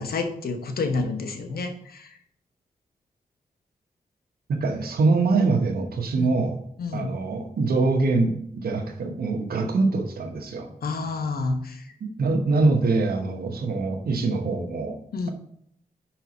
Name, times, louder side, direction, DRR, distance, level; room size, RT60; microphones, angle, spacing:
voice 1, 0.0-2.1 6.2-6.4 6.8-7.2 10.8-11.9 15.1-15.3, left 3 dB, 80° left, 6 dB, 1.0 m, -29 dB
voice 2, 4.5-6.6 6.9-10.7 12.0-15.0, right 3 dB, 80° right, 5 dB, 1.0 m, -24 dB
5.2 x 4.5 x 5.8 m, 0.67 s
cardioid pair, 40°, 15 cm